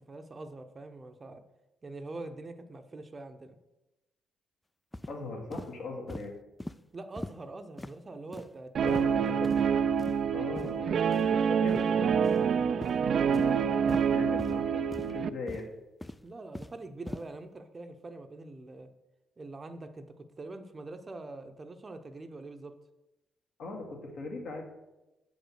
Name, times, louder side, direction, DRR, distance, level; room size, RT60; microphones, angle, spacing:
voice 1, 0.1-1.4 1.8-3.6 6.9-9.4 16.2-18.9 19.4-22.7, right 2 dB, 30° right, 7 dB, 0.7 m, -44 dB
sound 1, 4.9-5.1 5.5-5.7 6.1-6.3 6.6-6.8 7.2-7.4 7.8-7.9 8.3-8.5 8.9-9.1 9.4-9.6 10.0-10.2 10.5-10.7 11.1-11.3 11.7-11.8 12.2-12.5 12.8-13.0 13.3-13.5 13.9-14.0 14.4-14.6 14.9-15.1 15.5-15.7 16.0-16.8 17.1-17.2, left 1 dB, 10° left, 0.3 m, -40 dB
voice 2, 5.1-6.3 8.8-9.8 10.3-11.0 11.5-13.0 13.2-13.7 14.1-15.7 23.6-24.6, left 3 dB, 70° left, 1 dB, 2.0 m, -40 dB
Guitar, 8.7-15.3, right 7 dB, 60° right, 0.4 m, -27 dB
7.1 x 5.2 x 6.4 m, 1.0 s
cardioid pair, 90°, 0 cm